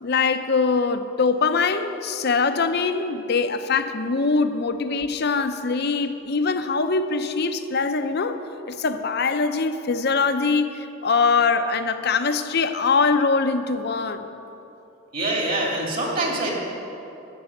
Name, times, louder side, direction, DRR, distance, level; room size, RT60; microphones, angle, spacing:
voice 1, 0.0-8.4 8.7-14.3, left 4 dB, 55° left, 9 dB, 0.6 m, -23 dB
voice 2, 15.1-16.5, right 2 dB, 45° right, -1 dB, 2.8 m, -25 dB
12.0 x 6.9 x 9.5 m, 2.9 s
head